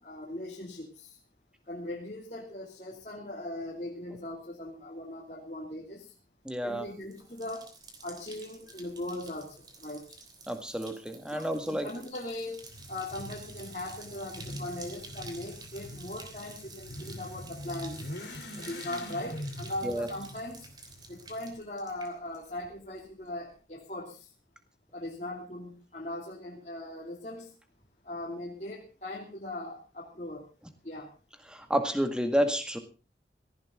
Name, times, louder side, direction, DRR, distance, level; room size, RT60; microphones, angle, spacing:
voice 1, 0.0-1.1 1.7-6.1 6.6-7.6 8.0-10.0 11.3-12.6 12.9-18.1 18.6-20.7 21.1-24.3 24.9-27.5 28.0-30.4 30.8-31.1, left 1 dB, 40° left, -3 dB, 2.8 m, -39 dB
voice 2, 6.5-6.9 10.5-11.9 19.8-20.1 31.5-32.8, equal, 5° right, 6 dB, 1.9 m, -30 dB
Bathtub (filling or washing), 6.6-22.7 23.0-23.5, right 3 dB, 25° right, 3.2 m, -50 dB
Motorcycle / Accelerating revving vroom, 12.6-21.5, left 1 dB, 75° left, 3.5 m, -44 dB
17.5 x 15.0 x 3.8 m, 0.33 s
head